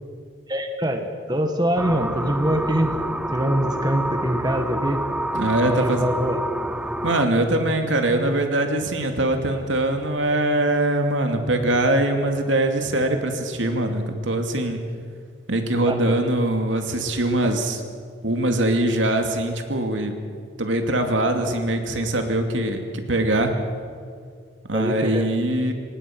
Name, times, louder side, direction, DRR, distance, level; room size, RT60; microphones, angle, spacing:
voice 1, 0.5-3.0 3.3-5.0 5.6-6.4 15.9-16.2 17.4-17.5 24.7-25.3, equal, 20° right, 5 dB, 1.4 m, -24 dB
sound 1, 1.8-7.3, right 1 dB, 5° right, 0.6 m, -28 dB
voice 2, 5.3-6.1 7.0-14.8 15.5-17.8 18.2-20.2 20.6-23.5 24.7-25.7, right 1 dB, 85° right, 5 dB, 2.5 m, -22 dB
25.5 x 20.0 x 6.1 m, 2.1 s
head